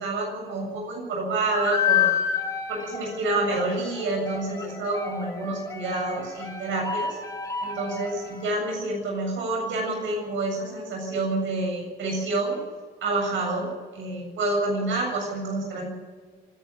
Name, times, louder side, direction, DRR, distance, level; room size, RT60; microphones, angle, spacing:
voice 1, 0.0-2.2 2.7-7.2 7.6-12.6 13.0-15.9, right 2 dB, 75° right, 0 dB, 7.6 m, -28 dB
sound 1, 1.5-8.5, left 7 dB, 15° left, 4.5 m, -30 dB
26.5 x 11.0 x 9.7 m, 1.5 s
cardioid pair, 90°, 20 cm